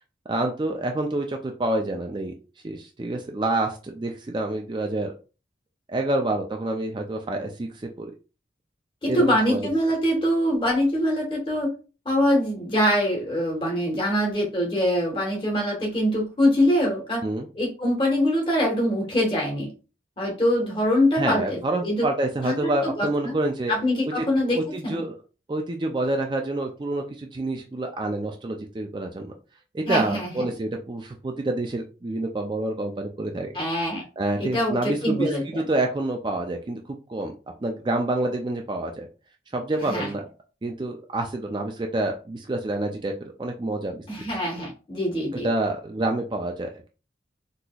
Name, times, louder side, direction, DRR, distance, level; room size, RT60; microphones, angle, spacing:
voice 1, 0.3-2.3 2.6-5.1 5.9-7.7 8.0-8.1 9.1-9.6 17.2-17.5 21.1-23.7 24.2-25.1 25.5-29.3 29.7-33.5 34.2-35.3 35.5-36.8 37.1-37.3 37.6-39.1 39.5-40.2 40.6-43.1 43.4-44.0 45.3-46.9, right 2 dB, 25° right, 3 dB, 0.4 m, -27 dB
voice 2, 9.0-11.7 12.0-17.2 17.5-19.7 20.2-22.1 22.4-23.3 23.7-25.0 29.9-30.5 33.5-34.0 34.4-35.6 39.8-40.1 44.1-45.5, equal, 30° left, -1 dB, 1.2 m, -24 dB
4.0 x 2.9 x 2.3 m, 0.34 s
head